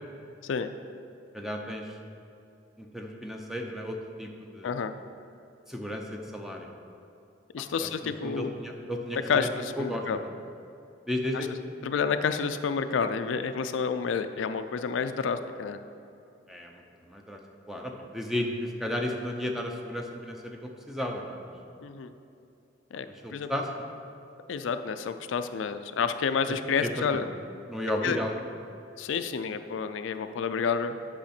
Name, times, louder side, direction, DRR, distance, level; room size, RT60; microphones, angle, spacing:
voice 1, 1.3-1.9 2.8-4.7 5.7-6.7 8.0-9.5 9.8-10.3 11.1-11.5 16.5-16.8 17.1-17.4 17.7-21.5 23.2-23.9 26.8-27.2 27.7-28.4, left 1 dB, ahead, 1 dB, 0.6 m, -34 dB
voice 2, 7.5-8.5 9.1-10.2 11.3-11.5 11.8-15.8 21.8-22.1 22.9-23.5 24.5-27.2 28.0-28.2 29.0-31.0, left 6 dB, 85° left, 9 dB, 0.4 m, -29 dB
8.6 x 5.6 x 4.3 m, 2.7 s
head